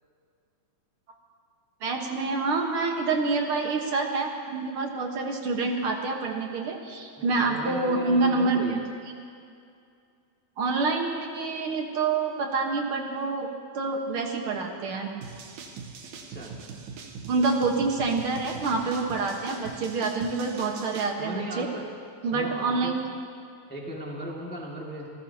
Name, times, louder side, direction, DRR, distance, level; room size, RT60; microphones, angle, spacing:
voice 1, 1.8-8.8 10.6-13.5 13.7-15.1 17.3-21.7 22.2-23.0, right 3 dB, 55° right, 2 dB, 1.9 m, -27 dB
voice 2, 7.2-8.7 16.3-16.5 21.2-21.9 22.3-23.0 23.7-25.1, right 1 dB, 5° left, -3 dB, 1.3 m, -37 dB
sound 1, 15.2-21.1, right 5 dB, 80° right, 2.5 m, -42 dB
27.5 x 16.5 x 2.8 m, 2.4 s
omnidirectional pair, 3.4 m